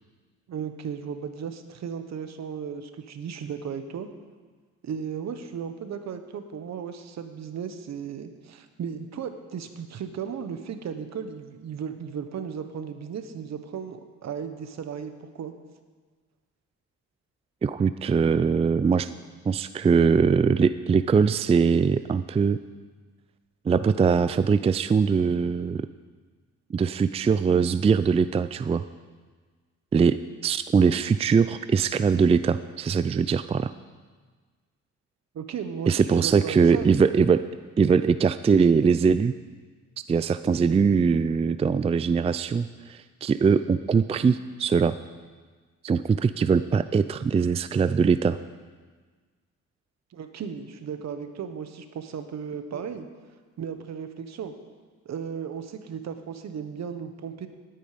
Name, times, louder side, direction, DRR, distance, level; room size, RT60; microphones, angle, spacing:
voice 1, 0.5-4.1 4.8-15.5 35.3-36.9 50.1-53.1 53.6-54.5 55.0-57.5, right 7 dB, 60° right, 8 dB, 1.3 m, -35 dB
voice 2, 17.6-19.1 19.5-22.6 23.7-25.9 26.7-28.8 29.9-33.7 35.9-37.4 37.8-39.3 40.1-45.0 45.8-48.4, right 5 dB, 20° right, 12 dB, 0.4 m, -22 dB
18.0 x 9.1 x 5.1 m, 1.5 s
cardioid pair, 90°, 30 cm